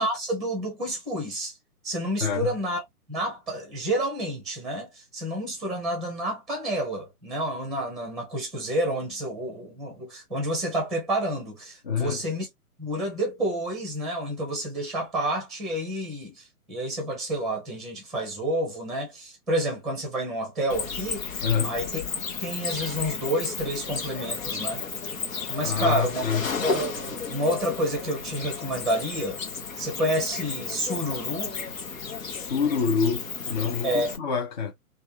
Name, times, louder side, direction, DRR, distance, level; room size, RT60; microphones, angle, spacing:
voice 1, 0.0-1.5 1.8-2.8 3.1-12.5 12.8-21.4 21.6-22.0 22.4-24.8 25.5-26.3 26.6-29.4 29.8-31.5 33.8-34.1, right 1 dB, ahead, 0.8 m, -29 dB
voice 2, 2.2-2.5 11.8-12.2 21.4-21.7 25.6-26.5 32.2-34.7, left 6 dB, 30° left, 0.7 m, -27 dB
Cricket, 20.7-34.2, left 5 dB, 60° left, 1.1 m, -33 dB
3.3 x 2.5 x 2.6 m
figure-of-eight pair, 130°, 45 cm